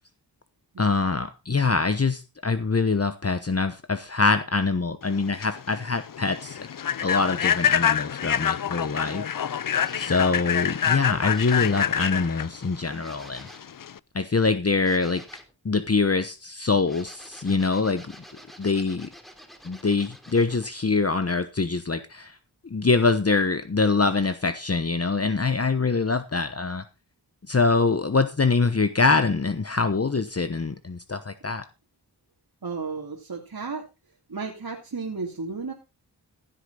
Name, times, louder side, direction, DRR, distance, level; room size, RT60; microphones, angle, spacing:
voice 1, 0.8-6.7 7.0-9.6 10.0-13.5 14.1-15.2 15.6-18.2 18.6-19.1 19.6-22.4 22.6-26.8 27.5-31.6, left 4 dB, 35° left, 10 dB, 1.1 m, -24 dB
Human voice / Train, 5.1-14.0, left 8 dB, 50° left, 0.6 m, -26 dB
sound 1, 9.7-10.4 11.3-12.0 13.0-13.7 14.8-15.5 16.8-20.9 24.2-24.4, equal, ahead, 2.9 m, -48 dB
voice 2, 32.6-33.9 34.3-35.7, right 4 dB, 60° right, -1 dB, 2.6 m, -33 dB
15.5 x 8.5 x 3.9 m, 0.27 s
wide cardioid pair, 65°, 41 cm